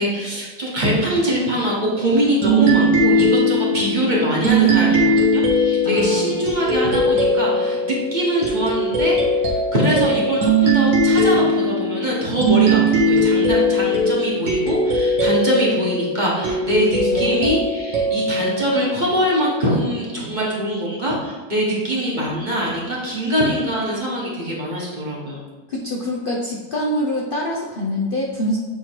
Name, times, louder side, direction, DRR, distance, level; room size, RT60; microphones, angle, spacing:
voice 1, 0.0-25.4, equal, 30° right, -5 dB, 1.3 m, -23 dB
sound 1, 2.4-19.6, equal, 85° right, 1.9 m, -20 dB
voice 2, 5.8-6.5 17.0-17.4 25.7-28.6, left 1 dB, 60° left, -2 dB, 0.5 m, -25 dB
8.4 x 3.1 x 4.5 m, 1.3 s
omnidirectional pair, 1.9 m